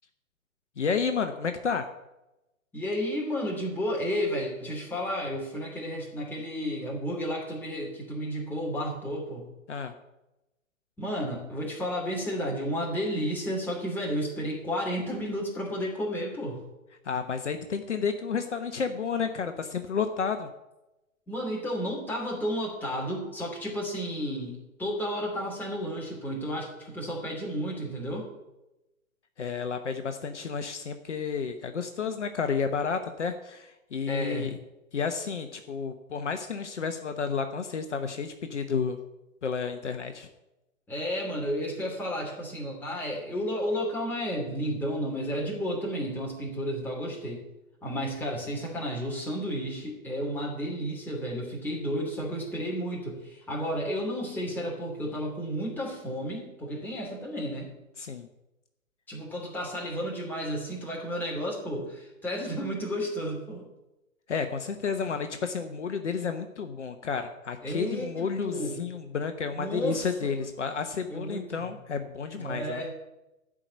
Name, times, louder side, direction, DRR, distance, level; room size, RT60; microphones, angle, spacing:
voice 1, 0.8-1.9 9.7-9.9 17.0-20.5 29.4-34.6 34.9-39.0 39.4-40.3 58.0-58.3 64.3-72.8, left 5 dB, 60° left, 7 dB, 1.0 m, -31 dB
voice 2, 2.7-9.5 11.0-16.6 21.3-28.3 34.1-34.6 40.9-47.4 47.8-57.7 59.1-63.7 65.0-65.2 67.6-68.7 69.5-70.4 71.1-71.7 72.3-73.0, equal, 5° left, -4 dB, 2.9 m, -32 dB
12.5 x 5.0 x 8.1 m, 0.96 s
figure-of-eight pair, 120°, 40 cm